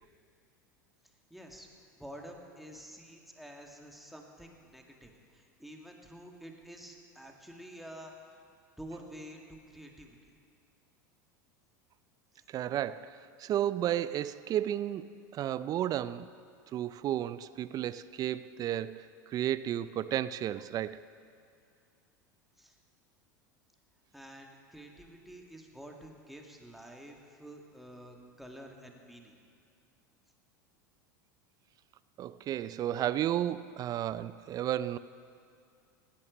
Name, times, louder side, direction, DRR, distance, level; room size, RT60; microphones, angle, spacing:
voice 1, 1.3-1.7 2.0-8.4 8.8-9.4 9.7-10.2 12.3-12.4 22.6-22.8 24.1-29.3, equal, ahead, 1 dB, 2.0 m, -49 dB
voice 2, 12.5-16.3 16.7-21.0 32.2-35.0, right 11 dB, 40° right, 16 dB, 0.4 m, -33 dB
17.5 x 8.6 x 6.3 m, 2.3 s
hypercardioid pair, 85°, 10 cm